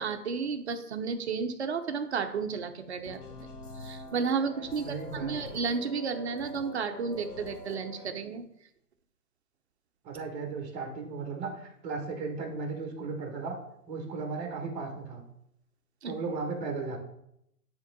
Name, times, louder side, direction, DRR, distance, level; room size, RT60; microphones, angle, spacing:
voice 1, 0.0-3.2 3.7-8.4 16.0-16.1, right 5 dB, 45° right, 7 dB, 0.7 m, -32 dB
sound 1, 3.0-8.1, left 2 dB, 65° left, 1.4 m, -44 dB
voice 2, 4.8-5.3 10.0-13.6 13.9-15.2 16.0-17.0, right 4 dB, 25° right, 3 dB, 1.6 m, -36 dB
9.7 x 3.7 x 4.0 m, 0.78 s
hypercardioid pair, 155°, 48 cm